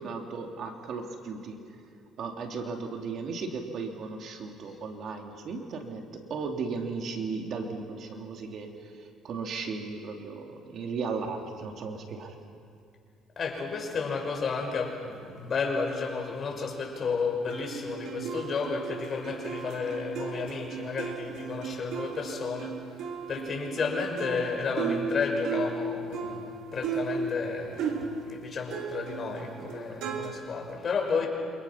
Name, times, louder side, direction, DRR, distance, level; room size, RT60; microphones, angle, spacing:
voice 1, 0.0-1.6 2.2-8.7 9.2-12.3, right 4 dB, 60° right, 3 dB, 3.2 m, -36 dB
voice 2, 13.4-22.7 23.3-28.0 28.3-31.3, left 5 dB, 45° left, 1 dB, 5.7 m, -32 dB
sound 1, 17.5-28.4 28.7-30.3, right 5 dB, 75° right, 3.5 m, -35 dB
28.5 x 27.5 x 6.0 m, 2.4 s
cardioid pair, 90°, 0 cm